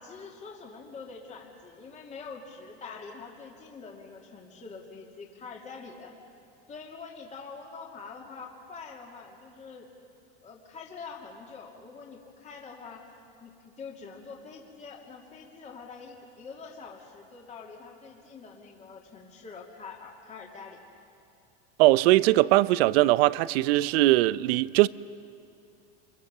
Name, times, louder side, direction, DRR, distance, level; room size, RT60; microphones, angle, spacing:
voice 1, 0.0-6.1 6.7-9.9 10.4-13.1 13.4-20.8, left 4 dB, 20° left, 2.8 m, -45 dB
voice 2, 21.8-24.9, right 18 dB, 70° right, 0.7 m, -21 dB
26.5 x 23.0 x 7.3 m
supercardioid pair, 140°, 32 cm